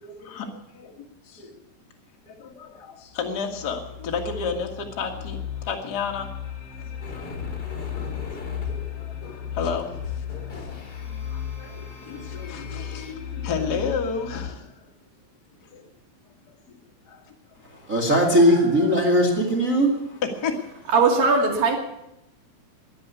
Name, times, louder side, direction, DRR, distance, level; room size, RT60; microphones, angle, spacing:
voice 1, 0.0-1.5 2.3-5.4 5.7-6.3 6.8-7.5 7.9-8.0 8.9-10.0 10.6-14.7 15.7-15.8 17.1-17.2 20.2-20.7, left 5 dB, 45° left, 1 dB, 1.3 m, -32 dB
sound 1, 2.5-2.6 3.1-14.5, left 9 dB, 60° left, 3.2 m, -35 dB
sound 2, 7.0-13.1, left 2 dB, 25° left, 2.9 m, -41 dB
voice 2, 17.7-20.0, equal, 25° right, 0 dB, 1.9 m, -19 dB
voice 3, 20.9-21.8, right 4 dB, 60° right, 1 dB, 4.1 m, -19 dB
21.0 x 7.6 x 8.3 m, 0.86 s
omnidirectional pair, 4.7 m